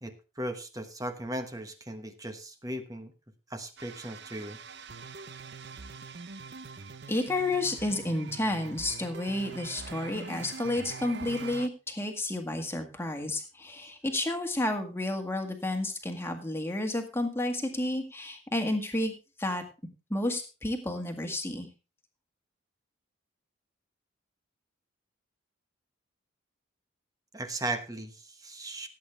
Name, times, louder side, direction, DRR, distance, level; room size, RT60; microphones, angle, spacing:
voice 1, 0.0-3.1 3.5-4.6 27.3-28.9, right 1 dB, 15° right, 8 dB, 1.1 m, -37 dB
sound 1, 3.8-11.7, right 4 dB, 55° right, 0.7 m, -44 dB
voice 2, 7.1-19.1 19.4-19.6 20.1-21.7, left 1 dB, 10° left, 4 dB, 1.8 m, -31 dB
17.0 x 8.5 x 3.3 m, 0.30 s
head